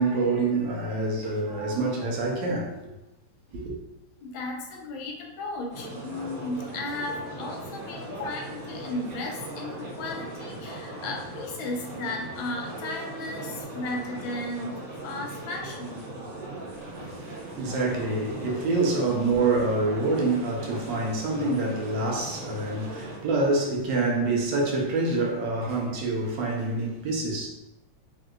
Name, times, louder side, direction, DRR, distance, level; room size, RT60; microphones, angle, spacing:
voice 1, 0.0-2.7 3.5-3.6 16.8-27.5, right 3 dB, 75° right, 1.2 m, -26 dB
voice 2, 4.2-14.8 15.0-16.1, left 2 dB, 80° left, 1.4 m, -35 dB
sound 1, 5.7-23.2, right 1 dB, 55° right, 1.2 m, -39 dB
3.6 x 2.6 x 2.3 m
omnidirectional pair, 2.2 m